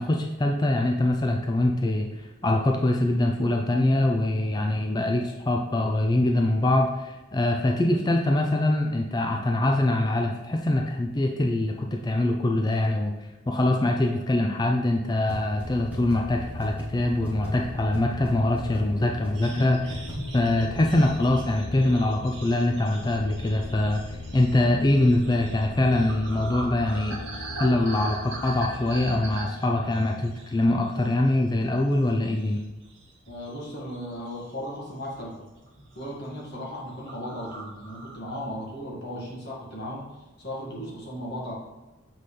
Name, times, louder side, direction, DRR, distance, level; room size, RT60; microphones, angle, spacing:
voice 1, 0.0-13.1 13.5-20.0 20.3-27.2 27.5-32.6, left 1 dB, 20° left, 2 dB, 0.4 m, -24 dB
sound 1, 15.3-15.4 15.6-15.7 15.9-16.2 16.6-16.8 17.2-17.5 17.9-18.0 18.2-18.3 18.6-18.8 19.2-19.5 19.9-20.1, right 1 dB, 5° right, 1.2 m, -36 dB
sound 2, 15.5-29.5, left 2 dB, 80° left, 0.6 m, -39 dB
sound 3, 19.3-31.0 31.4-31.6 32.1-33.6 33.9-34.6 35.2-35.4 35.7-36.1 36.3-36.5 36.7-36.8 37.1-38.5, right 2 dB, 60° right, 1.7 m, -41 dB
voice 2, 33.3-35.4 36.0-40.0 40.4-41.5, equal, 50° left, -4 dB, 1.7 m, -36 dB
7.6 x 4.0 x 3.3 m, 1.1 s
head